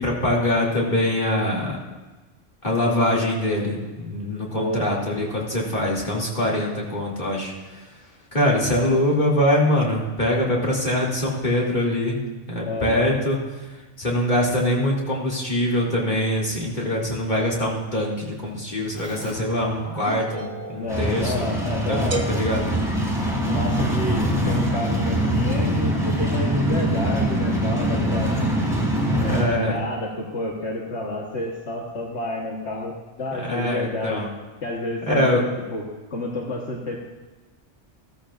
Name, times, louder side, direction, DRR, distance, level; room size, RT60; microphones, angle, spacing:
voice 1, 0.0-1.8 2.6-7.8 8.3-13.4 14.0-21.3 21.9-22.7 29.1-29.8 33.4-34.3 35.1-35.4, left 1 dB, 40° left, -4 dB, 2.8 m, -23 dB
voice 2, 4.5-4.9 12.6-13.1 20.8-22.4 23.5-28.4 29.2-34.3 34.6-35.3 35.7-35.8 36.1-37.0, left 1 dB, 65° left, -3 dB, 1.6 m, -29 dB
Keyboard (musical), 19.0-22.3, equal, 15° left, 1.1 m, -38 dB
sound 1, 20.9-29.4, equal, ahead, 3.2 m, -23 dB
sound 2, 22.1-24.0, right 2 dB, 85° right, 1.5 m, -34 dB
15.5 x 14.0 x 2.5 m, 1.2 s
omnidirectional pair, 1.2 m